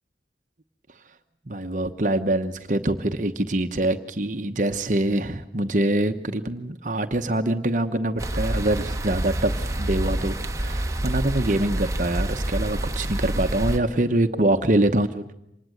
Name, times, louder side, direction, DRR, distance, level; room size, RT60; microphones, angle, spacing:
voice 1, 1.5-15.3, right 1 dB, 45° right, 7 dB, 1.0 m, -24 dB
sound 1, 8.2-13.8, right 1 dB, 15° right, 1.3 m, -27 dB
26.5 x 20.5 x 7.9 m, 0.82 s
head